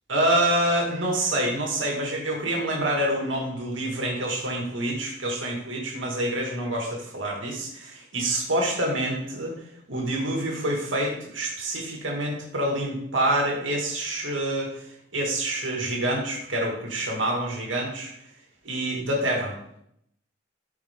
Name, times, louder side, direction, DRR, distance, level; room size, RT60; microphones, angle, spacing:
voice 1, 0.1-9.6 9.9-14.9 15.1-18.1 18.6-19.5, right 1 dB, 85° right, -1 dB, 2.1 m, -27 dB
13.0 x 4.8 x 3.7 m, 0.74 s
head